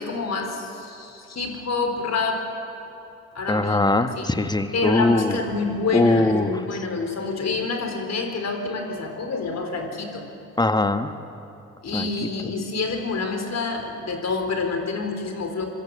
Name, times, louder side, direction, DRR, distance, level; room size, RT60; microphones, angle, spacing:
voice 1, 0.0-2.5 3.3-3.9 4.2-4.3 4.7-10.3 11.8-15.7, left 4 dB, 40° left, 4 dB, 4.2 m, -27 dB
voice 2, 3.5-5.4 5.9-6.5 10.6-11.1 11.9-12.1 12.4-12.5, left 2 dB, 10° left, 10 dB, 1.5 m, -21 dB
25.5 x 25.0 x 6.6 m, 2.8 s
figure-of-eight pair, 45°, 41 cm